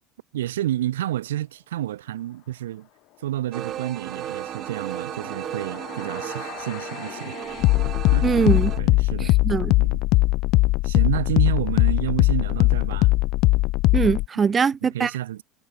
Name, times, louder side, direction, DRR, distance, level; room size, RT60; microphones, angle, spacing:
voice 1, 0.3-2.9 3.2-7.4 8.1-8.3 8.8-9.4 9.8-10.0 10.8-13.1 14.4-14.5 14.8-15.4, right 13 dB, 80° right, 1.5 m, -30 dB
sound 1, 3.5-8.8, right 11 dB, 50° right, 5.8 m, -35 dB
sound 2, 5.6-14.3, left 21 dB, 60° left, 0.9 m, -21 dB
voice 2, 8.2-8.7 9.2-9.7 13.9-15.1, right 6 dB, 30° right, 2.9 m, -22 dB
hypercardioid pair, 70°, 0 cm